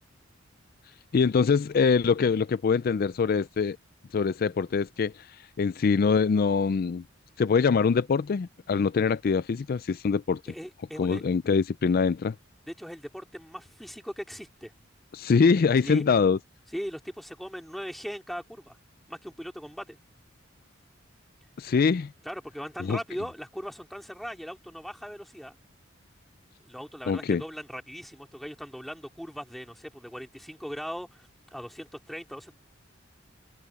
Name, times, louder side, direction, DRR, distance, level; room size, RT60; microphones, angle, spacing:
voice 1, 1.1-3.8 4.1-7.0 7.4-10.4 11.0-12.3 15.1-16.4 21.6-22.1 22.8-23.0 27.1-27.4, left 5 dB, 50° left, 0.4 m, -24 dB
voice 2, 10.5-11.2 12.7-14.7 15.8-16.0 16.7-18.8 19.1-20.0 22.2-25.6 26.6-32.5, equal, ahead, 3.0 m, -39 dB
head